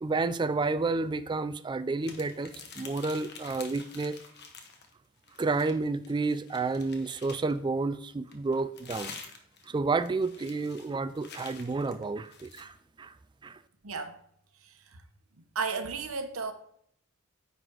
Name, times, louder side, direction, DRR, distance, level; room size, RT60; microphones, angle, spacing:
voice 1, 0.0-4.2 5.4-9.1 9.7-13.1 13.4-13.6, right 3 dB, 20° right, 0.3 m, -30 dB
sound 1, 2.0-4.9 5.2-7.6 8.3-12.7, left 5 dB, 50° left, 1.0 m, -48 dB
voice 2, 13.8-14.2 14.6-15.0 15.5-16.5, right 4 dB, 70° right, 0.9 m, -34 dB
9.4 x 4.0 x 4.5 m
head